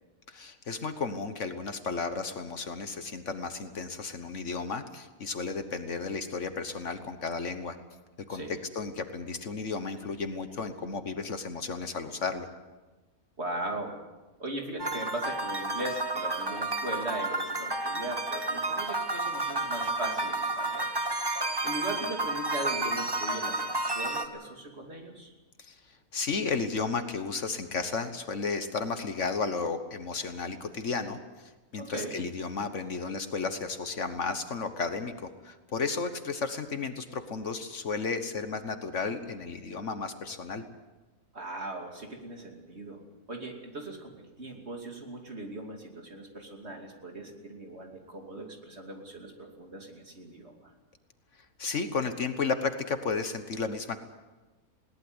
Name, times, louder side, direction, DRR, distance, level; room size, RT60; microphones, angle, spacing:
voice 1, 0.3-7.8 8.3-12.5 25.6-40.6 51.6-54.0, left 4 dB, 55° left, 9 dB, 1.5 m, -33 dB
voice 2, 13.4-14.0 14.4-20.9 21.6-25.3 31.8-32.2 41.3-43.0 43.3-50.7, right 1 dB, 45° right, 2 dB, 3.0 m, -39 dB
sound 1, 14.8-24.3, right 2 dB, 20° right, 1.0 m, -31 dB
20.5 x 18.0 x 8.0 m, 1.2 s
omnidirectional pair, 1.6 m